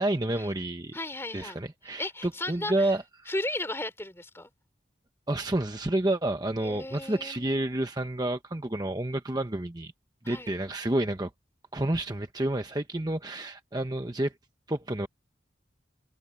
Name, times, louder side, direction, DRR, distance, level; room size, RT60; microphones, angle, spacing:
voice 1, 0.0-1.0 1.3-3.3 5.3-9.9 10.2-11.3 11.7-14.3 14.7-15.1, right 1 dB, 20° right, 0.9 m, -29 dB
voice 2, 0.9-1.6 1.9-2.9 3.3-4.5 6.6-7.5 10.2-10.5, left 1 dB, 15° left, 3.5 m, -35 dB
head